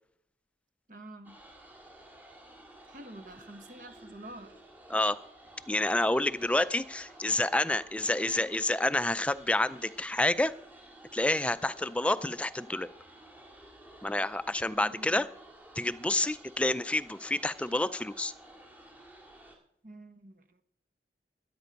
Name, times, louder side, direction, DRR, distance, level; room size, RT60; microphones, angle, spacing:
voice 1, 0.9-1.4 2.9-4.6 14.8-15.3 19.8-20.6, right 1 dB, 45° right, 10 dB, 1.1 m, -48 dB
sound 1, 1.2-19.6, right 1 dB, 10° right, 2.0 m, -53 dB
voice 2, 4.9-5.2 5.7-10.5 11.1-12.9 14.0-15.3 15.8-18.3, left 2 dB, 5° left, 13 dB, 0.4 m, -28 dB
12.5 x 10.5 x 5.3 m, 0.71 s
head